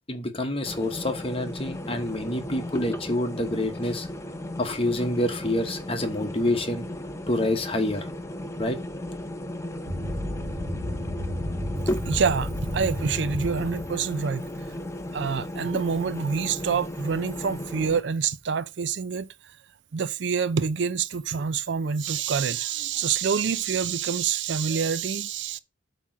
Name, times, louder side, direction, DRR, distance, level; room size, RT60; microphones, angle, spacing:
voice 1, 0.1-4.1 4.6-6.8 7.3-8.0 8.6-8.8, left 1 dB, 30° left, 1.1 m, -27 dB
sound 1, 0.6-18.0, left 1 dB, 15° left, 0.6 m, -35 dB
sound 2, 9.9-14.1, left 1 dB, 45° right, 1.4 m, -32 dB
voice 2, 12.1-14.4 15.1-19.3 19.9-25.6, right 6 dB, 70° right, 0.5 m, -26 dB
8.2 x 3.1 x 5.9 m
head